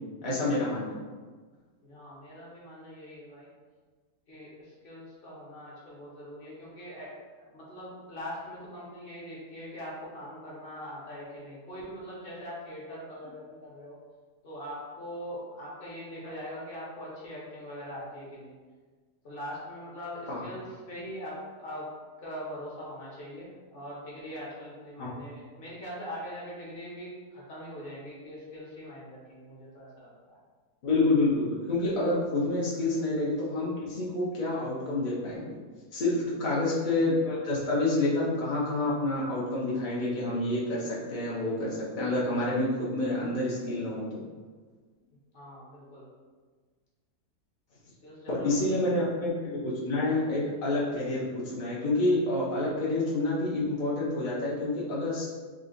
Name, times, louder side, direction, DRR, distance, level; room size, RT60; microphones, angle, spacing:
voice 1, 0.2-1.0 20.3-20.4 25.0-25.1 30.8-35.5 35.9-44.2 48.3-55.3, left 2 dB, 55° left, -7 dB, 0.5 m, -28 dB
voice 2, 1.8-3.5 4.3-14.0 14.4-18.5 19.2-21.9 22.2-30.4 45.3-46.1 47.9-48.5, equal, 40° left, -6 dB, 1.0 m, -42 dB
3.6 x 2.3 x 3.8 m, 1.4 s
omnidirectional pair, 1.7 m